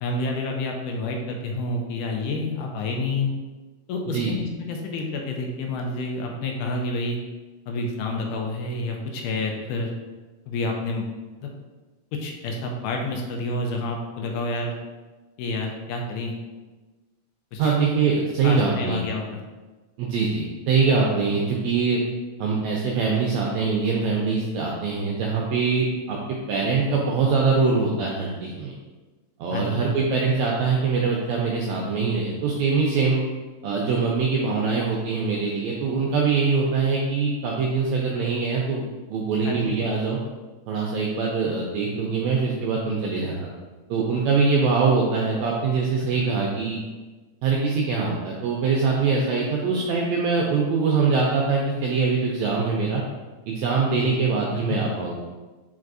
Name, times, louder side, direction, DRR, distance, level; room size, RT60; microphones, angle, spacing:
voice 1, 0.0-3.3 3.9-7.2 7.7-9.9 10.5-11.1 11.4-11.5 12.2-14.7 15.4-16.4 17.5-17.8 18.4-19.4 29.5-29.8 39.4-39.8 46.0-46.1 53.9-54.1 54.7-54.8, left 2 dB, 80° left, 1 dB, 2.0 m, -29 dB
voice 2, 17.6-19.0 20.0-22.0 22.4-28.7 29.4-33.2 33.6-38.8 39.1-40.2 40.7-43.5 43.9-46.8 47.4-53.0 53.5-55.2, right 4 dB, 85° right, -2 dB, 1.6 m, -23 dB
4.7 x 4.3 x 2.5 m, 1.2 s
omnidirectional pair, 3.7 m